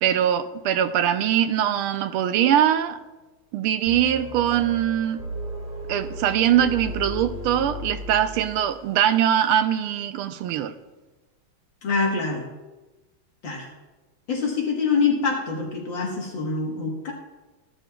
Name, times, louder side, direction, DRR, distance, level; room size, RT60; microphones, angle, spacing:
voice 1, 0.0-3.0 3.5-5.2 5.9-10.7, right 10 dB, 85° right, 1.5 m, -22 dB
sound 1, 3.9-8.9, equal, 30° right, 1.6 m, -35 dB
voice 2, 11.8-12.5 13.4-13.7 14.3-17.1, left 4 dB, 65° left, 2.0 m, -25 dB
15.5 x 12.0 x 2.3 m
omnidirectional pair, 2.3 m